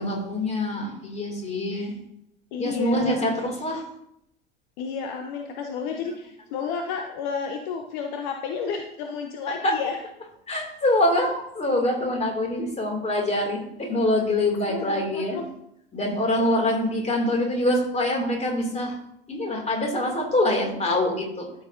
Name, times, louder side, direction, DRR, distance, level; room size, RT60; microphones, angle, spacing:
voice 1, 0.0-1.9 2.6-3.8 9.6-9.7 10.5-15.4 15.9-18.9 19.3-21.5, left 1 dB, 20° left, 2 dB, 2.5 m, -25 dB
voice 2, 2.5-3.3 4.8-10.0 14.7-15.5, left 5 dB, 55° left, 4 dB, 0.9 m, -31 dB
13.0 x 6.2 x 2.6 m, 0.78 s
figure-of-eight pair, 70°, 29 cm